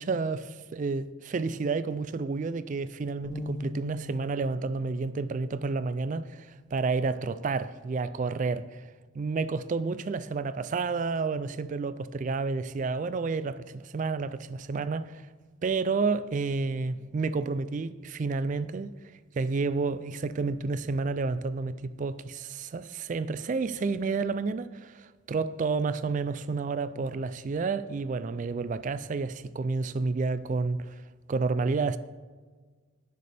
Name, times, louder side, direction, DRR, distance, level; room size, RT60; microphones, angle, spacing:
voice 1, 0.0-8.9 9.1-15.3 15.6-18.9 19.4-31.0 31.3-32.0, right 4 dB, 40° right, 0.3 m, -30 dB
sound 1, 3.2-9.5, left 2 dB, 85° left, 3.4 m, -45 dB
17.5 x 6.8 x 3.4 m
head